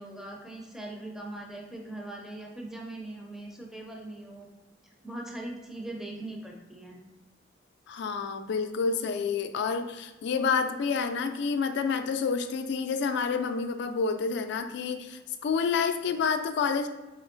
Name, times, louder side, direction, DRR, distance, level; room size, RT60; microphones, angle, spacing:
voice 1, 0.0-4.5 5.0-7.0, right 1 dB, 5° right, -1 dB, 0.4 m, -40 dB
voice 2, 7.9-16.9, left 5 dB, 65° left, 8 dB, 0.3 m, -29 dB
4.3 x 3.0 x 2.5 m, 1.1 s
head